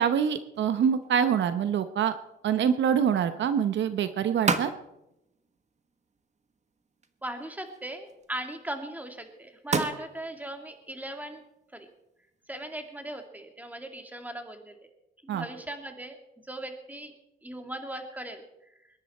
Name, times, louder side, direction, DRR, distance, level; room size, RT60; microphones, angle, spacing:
voice 1, 0.0-2.2 2.4-4.7 15.3-15.4, right 8 dB, 65° right, 11 dB, 0.9 m, -25 dB
sound 1, 0.5-13.3, right 4 dB, 35° right, 1.4 m, -38 dB
voice 2, 7.2-11.4 11.7-11.9 12.5-14.9 15.2-16.2 16.4-17.1 17.4-18.7, right 1 dB, 10° right, 5 dB, 2.3 m, -38 dB
21.5 x 11.0 x 4.3 m, 0.88 s
cardioid pair, 90°, 20 cm